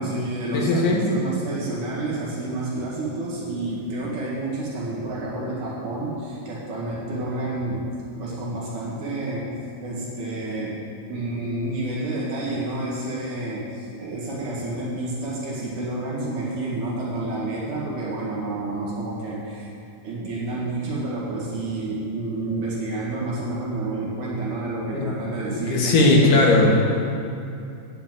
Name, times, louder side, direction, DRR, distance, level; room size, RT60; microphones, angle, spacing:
voice 1, 0.0-7.9 8.2-9.5 9.8-10.8 11.1-19.7 20.0-26.3, right 2 dB, 70° right, -6 dB, 3.3 m, -29 dB
voice 2, 0.5-1.0 24.9-25.1 25.5-26.7, left 2 dB, 80° left, -2 dB, 3.1 m, -18 dB
9.6 x 7.2 x 7.4 m, 2.5 s
omnidirectional pair, 3.6 m